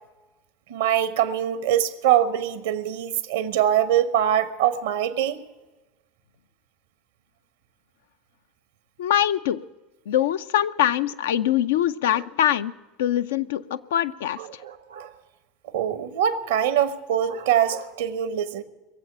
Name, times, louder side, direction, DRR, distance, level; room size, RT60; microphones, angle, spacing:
voice 1, 0.7-5.4 14.6-15.1 15.7-18.6, right 10 dB, 65° right, 1.0 m, -23 dB
voice 2, 9.0-9.6 10.1-12.7 13.0-14.6, left 11 dB, 65° left, 0.5 m, -23 dB
21.5 x 7.9 x 8.6 m
figure-of-eight pair, 75°, 0 cm